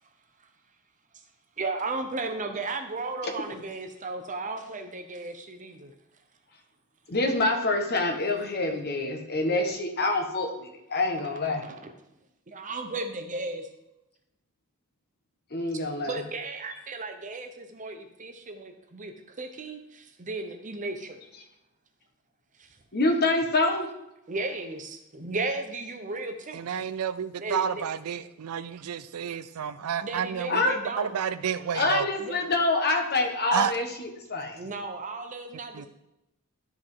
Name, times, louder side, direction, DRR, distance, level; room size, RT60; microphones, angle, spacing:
voice 1, 1.6-5.9 11.2-11.9 12.5-13.7 16.0-21.2 22.6-22.8 24.3-26.9 27.4-27.8 30.0-31.2 32.2-32.5 34.5-35.9, right 3 dB, 35° right, 0.9 m, -35 dB
voice 2, 7.1-11.6 15.5-16.2 22.9-23.9 30.5-30.8 31.7-34.6, left 2 dB, 45° left, 1.3 m, -26 dB
voice 3, 26.5-30.6 31.0-32.1 33.5-33.7 35.7-35.9, right 8 dB, 85° right, 0.4 m, -30 dB
12.5 x 4.8 x 3.8 m
head